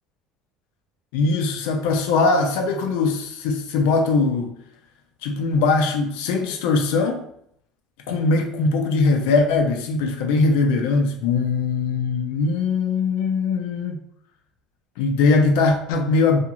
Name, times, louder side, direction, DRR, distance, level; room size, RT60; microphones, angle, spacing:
voice 1, 1.1-4.5 5.2-7.2 8.1-14.0 15.0-16.4, left 3 dB, 80° left, 4 dB, 0.5 m, -21 dB
2.5 x 2.3 x 2.9 m, 0.71 s
cardioid pair, 160°, 0 cm